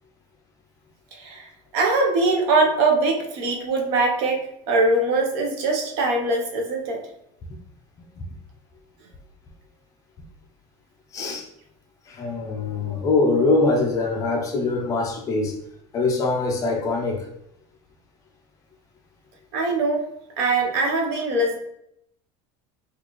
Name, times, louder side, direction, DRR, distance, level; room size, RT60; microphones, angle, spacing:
voice 1, 1.1-1.5 1.7-7.0 19.5-20.1 20.4-21.6, right 2 dB, 60° right, 0.7 m, -22 dB
voice 2, 11.1-11.5 12.1-15.5 15.9-17.3, left 3 dB, 25° left, 0.3 m, -23 dB
3.8 x 2.3 x 3.0 m
cardioid pair, 170°, 15 cm